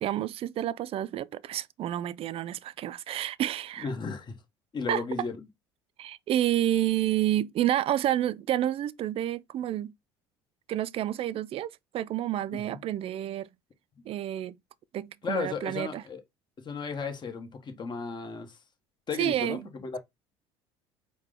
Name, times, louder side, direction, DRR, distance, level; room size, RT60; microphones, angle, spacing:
voice 1, 0.0-3.9 4.9-5.0 6.0-9.9 10.7-13.5 14.1-14.6 14.9-16.0 19.2-19.6, right 12 dB, 45° right, 0.4 m, -29 dB
voice 2, 3.8-4.4 4.7-5.5 12.5-12.8 15.2-16.2 16.6-18.6 19.1-20.0, left 5 dB, 35° left, 1.2 m, -35 dB
4.6 x 2.2 x 3.7 m
hypercardioid pair, 75°, 13 cm